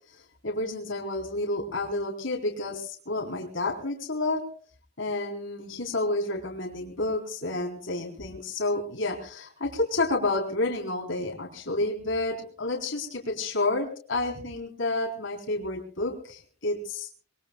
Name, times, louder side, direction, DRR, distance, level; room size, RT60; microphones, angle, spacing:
voice 1, 0.4-4.4 5.0-17.1, left 2 dB, 55° left, 1 dB, 3.9 m, -30 dB
24.0 x 22.5 x 2.3 m, 0.43 s
head